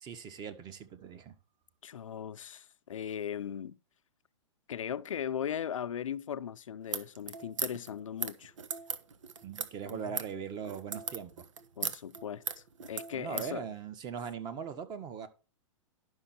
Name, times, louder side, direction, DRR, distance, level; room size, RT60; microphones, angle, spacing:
voice 1, 0.0-1.3 9.4-11.4 13.1-15.3, right 7 dB, 25° right, 1.4 m, -40 dB
voice 2, 1.8-3.8 4.7-8.5 9.9-10.2 11.8-13.7, left 9 dB, 85° left, 0.7 m, -38 dB
sound 1, 6.8-13.5, right 7 dB, 80° right, 1.2 m, -38 dB
11.5 x 6.2 x 4.4 m
hypercardioid pair, 140°, 16 cm